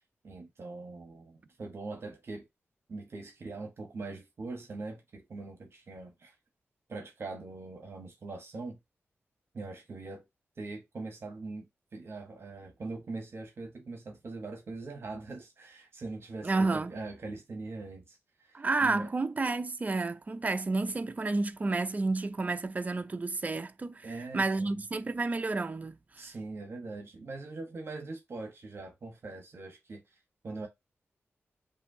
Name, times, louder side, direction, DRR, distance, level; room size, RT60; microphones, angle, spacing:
voice 1, 0.2-2.5 2.9-6.3 6.9-8.8 9.5-10.2 10.6-19.1 24.0-24.7 26.2-30.0 30.4-30.7, right 3 dB, 55° right, 1.2 m, -42 dB
voice 2, 16.4-16.9 18.5-26.0, right 3 dB, 30° right, 0.5 m, -30 dB
5.5 x 2.7 x 2.7 m
wide cardioid pair, 90°, 5 cm